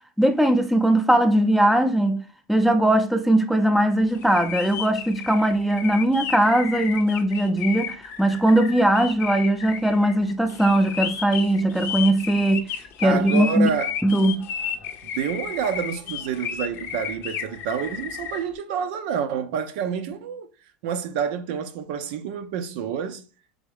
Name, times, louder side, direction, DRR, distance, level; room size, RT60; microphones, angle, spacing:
voice 1, 0.2-2.2 2.5-12.7 13.0-13.7 14.0-14.5, right 1 dB, ahead, 0.5 m, -20 dB
sound 1, 4.1-18.4, left 8 dB, 45° left, 0.6 m, -33 dB
voice 2, 13.0-13.9 15.1-20.5 20.8-23.2, right 7 dB, 65° right, 0.6 m, -28 dB
3.6 x 3.4 x 3.3 m
hypercardioid pair, 105°, 5 cm